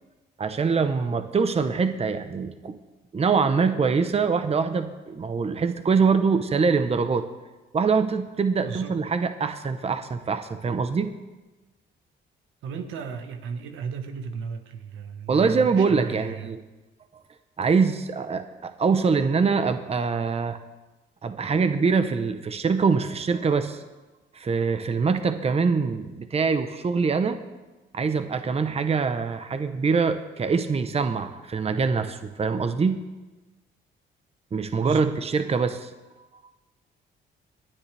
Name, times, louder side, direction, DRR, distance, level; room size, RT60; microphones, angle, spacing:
voice 1, 0.4-2.8 3.1-7.3 7.7-11.1 15.3-16.6 17.6-20.6 21.2-23.8 24.3-27.4 27.9-33.0 34.5-35.9, right 5 dB, 30° right, 9 dB, 0.9 m, -24 dB
voice 2, 8.6-9.0 12.6-16.6 34.8-35.2, right 5 dB, 85° right, 7 dB, 1.3 m, -34 dB
26.5 x 9.5 x 3.4 m, 1.2 s
cardioid pair, 90°, 20 cm